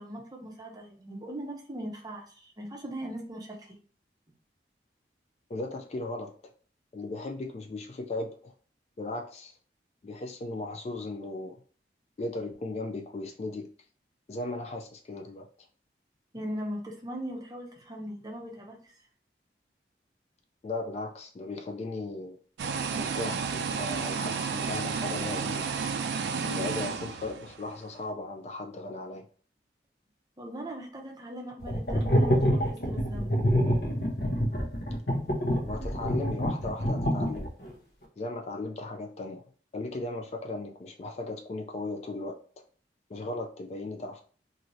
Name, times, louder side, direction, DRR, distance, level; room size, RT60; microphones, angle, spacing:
voice 1, 0.0-3.8 16.3-19.0 30.4-33.4, equal, 20° right, 1 dB, 0.6 m, -39 dB
voice 2, 5.5-6.3 6.9-8.5 9.0-9.6 10.0-11.6 12.2-13.7 14.3-15.5 20.6-22.4 22.9-25.7 26.4-29.2 35.6-37.5 38.2-39.4 39.7-42.4 43.1-44.2, left 2 dB, 35° left, 4 dB, 0.3 m, -36 dB
sound 1, 22.6-27.8, right 5 dB, 75° right, 0.3 m, -32 dB
sound 2, 31.6-37.7, equal, 70° left, 0.9 m, -26 dB
2.7 x 2.6 x 3.0 m, 0.43 s
head